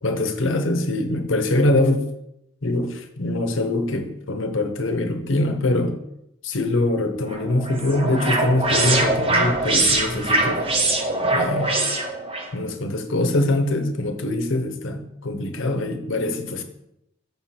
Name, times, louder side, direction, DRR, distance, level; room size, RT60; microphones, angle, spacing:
voice 1, 0.0-2.1 2.6-6.0 6.4-11.0 11.2-11.7 12.5-16.6, left 2 dB, 65° left, 6 dB, 0.8 m, -23 dB
sound 1, 7.3-12.5, right 2 dB, 30° right, 0.9 m, -22 dB
5.7 x 5.7 x 4.3 m, 0.82 s
head